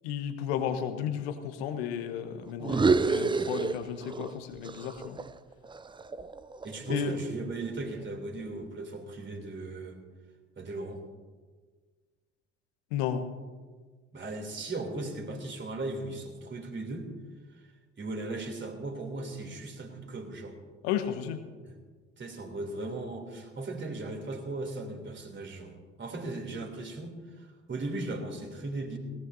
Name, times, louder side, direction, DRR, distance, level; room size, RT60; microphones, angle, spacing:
voice 1, 0.0-5.2 6.9-7.1 12.9-13.3 20.8-21.4, left 9 dB, 70° left, 9 dB, 1.2 m, -33 dB
sound 1, 2.6-4.4 4.6-6.9, right 4 dB, 15° right, 0.5 m, -29 dB
voice 2, 6.6-10.0 10.6-11.0 14.1-17.1 18.0-20.5 21.6-21.7 22.2-25.7 26.0-29.0, right 2 dB, 35° right, 3 dB, 3.1 m, -37 dB
20.5 x 17.5 x 2.7 m, 1.5 s
figure-of-eight pair, 50°, 33 cm